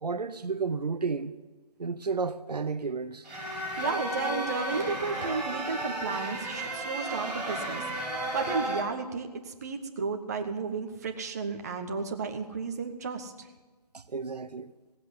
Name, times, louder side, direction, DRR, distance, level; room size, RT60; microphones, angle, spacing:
voice 1, 0.0-1.3 1.8-3.3 13.9-14.7, right 4 dB, 70° right, 0.9 m, -32 dB
sound 1, 3.2-8.8, right 1 dB, 5° right, 2.3 m, -33 dB
voice 2, 3.8-7.8 8.3-13.5, right 4 dB, 25° right, 0.9 m, -33 dB
16.5 x 7.7 x 9.4 m
figure-of-eight pair, 165°, 21 cm